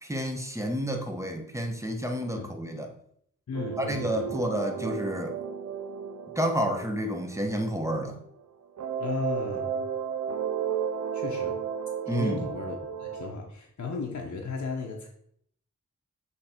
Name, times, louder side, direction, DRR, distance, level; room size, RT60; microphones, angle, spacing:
voice 1, 0.0-2.9 3.8-5.4 6.3-8.2 12.1-12.5, equal, 10° right, 4 dB, 1.0 m, -30 dB
voice 2, 3.5-4.4 9.0-9.9 11.1-11.6 12.1-15.1, left 4 dB, 65° left, 0 dB, 0.9 m, -35 dB
sound 1, 3.5-8.4 8.8-13.3, right 8 dB, 70° right, 0.7 m, -34 dB
8.1 x 3.2 x 4.4 m, 0.67 s
wide cardioid pair, 85°, 30 cm